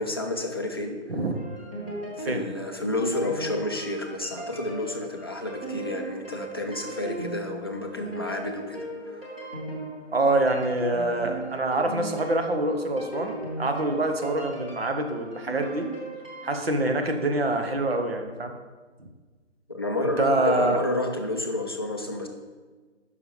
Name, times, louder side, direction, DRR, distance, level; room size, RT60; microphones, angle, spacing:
voice 1, 0.0-1.0 2.2-8.8 19.7-22.3, left 2 dB, 20° left, 1 dB, 0.5 m, -30 dB
sound 1, 1.3-16.6, right 2 dB, 10° right, 0.7 m, -38 dB
voice 2, 10.1-15.9 16.4-18.5 20.0-20.8, right 2 dB, 55° right, 5 dB, 1.1 m, -25 dB
11.0 x 5.7 x 3.2 m, 1.4 s
figure-of-eight pair, 145°, 36 cm